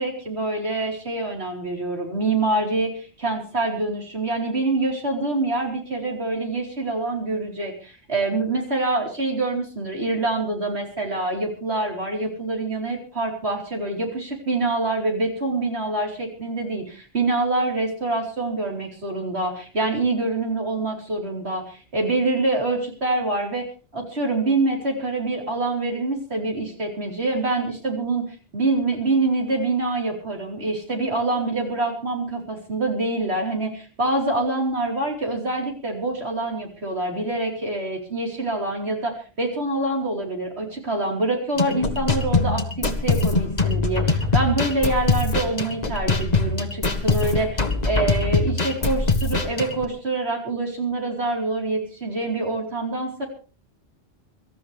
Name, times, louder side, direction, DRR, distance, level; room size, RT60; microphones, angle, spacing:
voice 1, 0.0-23.7 23.9-28.2 28.5-53.3, right 2 dB, 65° right, 1 dB, 4.5 m, -25 dB
sound 1, 41.6-49.8, left 3 dB, 35° left, 1.6 m, -23 dB
25.0 x 13.5 x 3.4 m, 0.35 s
omnidirectional pair, 1.2 m